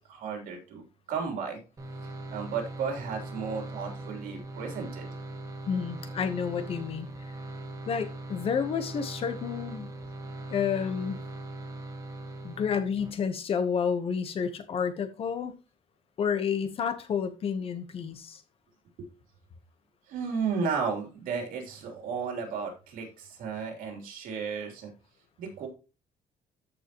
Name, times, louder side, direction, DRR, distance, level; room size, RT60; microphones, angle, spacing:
voice 1, 0.1-1.6 2.3-5.1 20.1-24.9 25.4-25.7, right 5 dB, 80° right, 3.4 m, -34 dB
sound 1, 1.8-13.1, right 2 dB, 20° right, 1.5 m, -40 dB
voice 2, 5.7-7.1 7.9-9.9 10.5-11.2 12.4-15.5 16.2-18.4, left 7 dB, 40° left, 1.2 m, -30 dB
14.0 x 5.7 x 3.1 m
cardioid pair, 165°, 14 cm